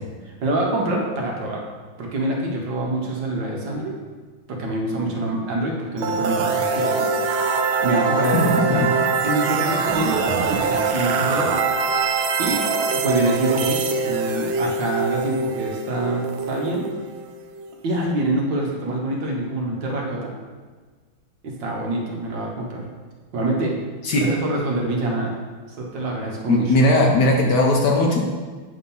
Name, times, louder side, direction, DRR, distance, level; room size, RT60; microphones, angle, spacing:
voice 1, 0.4-1.6 2.0-3.9 4.5-7.1 7.8-8.8 9.2-11.6 12.4-12.6 13.0-16.9 17.8-20.3 21.4-22.8 23.3-23.8 24.1-25.3 25.8-26.8, right 2 dB, 65° right, -2 dB, 1.7 m, -25 dB
sound 1, 6.0-17.8, right 4 dB, 85° right, 1.5 m, -23 dB
voice 2, 26.5-28.2, left 1 dB, 65° left, 0 dB, 1.3 m, -18 dB
8.6 x 2.9 x 5.4 m, 1.4 s
omnidirectional pair, 2.2 m